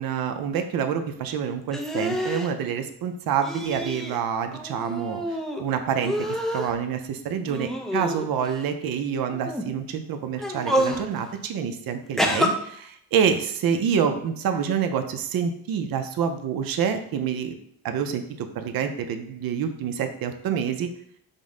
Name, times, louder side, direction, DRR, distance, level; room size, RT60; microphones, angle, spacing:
voice 1, 0.0-6.3 6.5-17.5 17.8-20.9, right 7 dB, 60° right, 7 dB, 0.6 m, -27 dB
sound 1, 1.7-2.5 3.4-4.2 4.5-5.6 6.0-6.7 7.5-8.5 9.3-9.6 10.4-11.0 12.2-12.5, equal, ahead, 0.3 m, -27 dB
5.2 x 2.1 x 3.7 m, 0.67 s
cardioid pair, 115°, 39 cm